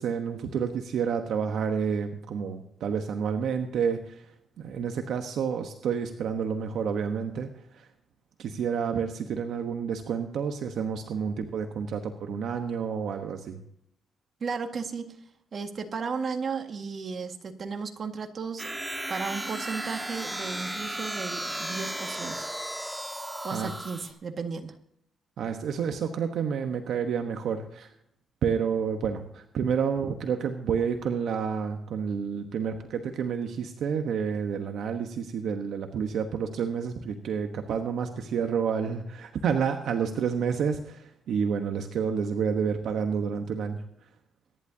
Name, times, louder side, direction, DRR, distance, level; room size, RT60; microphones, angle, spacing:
voice 1, 0.0-7.9 8.4-13.6 23.5-23.7 25.4-27.9 28.4-43.8, right 6 dB, 75° right, 5 dB, 1.1 m, -29 dB
voice 2, 14.4-15.2 15.5-18.7 19.1-22.5 23.4-24.8, right 5 dB, 50° right, 5 dB, 1.8 m, -34 dB
sound 1, 18.6-24.1, right 1 dB, 10° right, 2.4 m, -35 dB
23.0 x 11.0 x 2.8 m, 0.74 s
cardioid pair, 85°, 0 cm